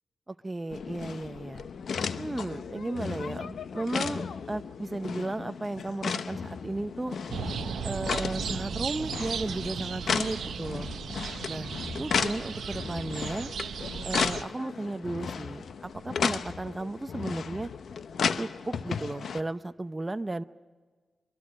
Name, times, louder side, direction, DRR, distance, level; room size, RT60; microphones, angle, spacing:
voice 1, 0.3-1.6 2.2-7.2 7.8-10.9 11.5-11.7 11.9-13.5 14.0-17.7 18.4-20.4, right 2 dB, 20° right, 11 dB, 0.7 m, -34 dB
sound 1, 0.7-19.4, left 6 dB, 80° left, 0.8 m, -34 dB
sound 2, 7.3-14.4, right 7 dB, 85° right, 0.6 m, -36 dB
24.0 x 24.0 x 6.5 m, 1.5 s
cardioid pair, 70°, 0 cm